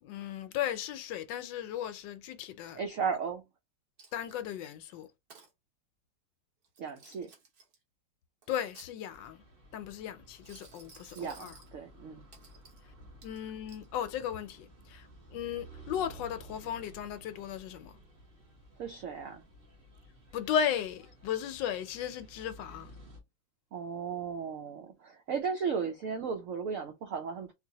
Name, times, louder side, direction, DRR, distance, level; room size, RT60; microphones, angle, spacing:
voice 1, 0.0-2.8 4.1-5.1 8.5-9.4 9.7-11.5 13.2-17.9 20.3-22.9, left 9 dB, 75° left, 1.2 m, -36 dB
voice 2, 2.7-3.4 6.8-7.3 11.2-12.2 18.8-19.4 23.7-27.5, right 6 dB, 80° right, 0.7 m, -35 dB
Coin (dropping), 4.0-4.6 5.0-5.5 6.6-7.8 8.4-9.4 10.3-11.7 12.3-12.8 13.2-13.9, right 5 dB, 55° right, 1.5 m, -56 dB
sound 1, 9.1-23.2, right 2 dB, 30° right, 1.3 m, -54 dB
3.9 x 2.4 x 2.8 m
omnidirectional pair, 2.0 m